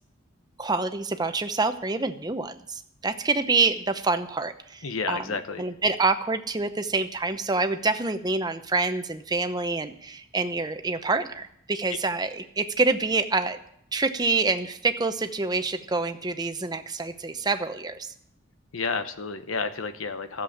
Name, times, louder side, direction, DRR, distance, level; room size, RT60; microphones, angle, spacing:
voice 1, 0.6-5.2 5.6-13.6 13.9-18.1, right 3 dB, 20° right, 8 dB, 0.8 m, -27 dB
voice 2, 4.8-5.7 18.7-20.4, left 4 dB, 90° left, 9 dB, 1.0 m, -31 dB
14.0 x 7.6 x 8.6 m, 0.70 s
head